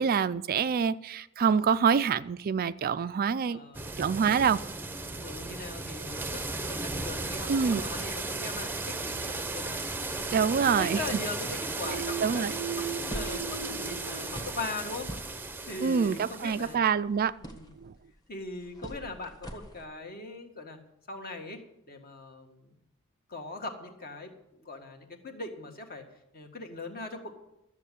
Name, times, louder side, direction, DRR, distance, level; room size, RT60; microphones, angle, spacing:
voice 1, 0.0-3.6 4.0-4.6 7.5-7.8 10.3-11.0 12.2-12.5 15.8-17.3 17.8-17.9, right 6 dB, 40° right, 14 dB, 0.4 m, -26 dB
voice 2, 3.5-4.0 5.1-16.9 17.4-17.7 18.3-20.8 21.1-22.7 23.3-26.0 26.3-27.3, left 3 dB, 45° left, 4 dB, 1.8 m, -41 dB
sound 1, 3.7-16.8, right 3 dB, 10° right, 0.7 m, -36 dB
sound 2, 11.8-15.5, right 6 dB, 90° right, 0.6 m, -39 dB
sound 3, 13.1-19.8, equal, 20° left, 1.5 m, -45 dB
13.0 x 7.4 x 8.4 m, 0.87 s
head